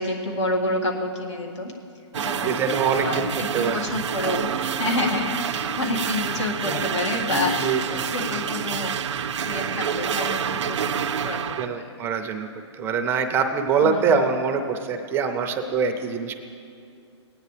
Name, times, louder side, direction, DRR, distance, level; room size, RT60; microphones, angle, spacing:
voice 1, 0.0-1.7 2.2-2.6 3.0-8.9 9.3-11.9 13.8-14.2, left 2 dB, 80° left, 0 dB, 2.1 m, -29 dB
sound 1, 2.1-11.7, right 8 dB, 85° right, 0.5 m, -28 dB
voice 2, 2.4-3.8 6.7-6.9 7.3-8.0 11.6-16.4, right 5 dB, 15° right, 6 dB, 0.5 m, -24 dB
19.0 x 9.3 x 3.3 m, 2.4 s
hypercardioid pair, 150°, 15 cm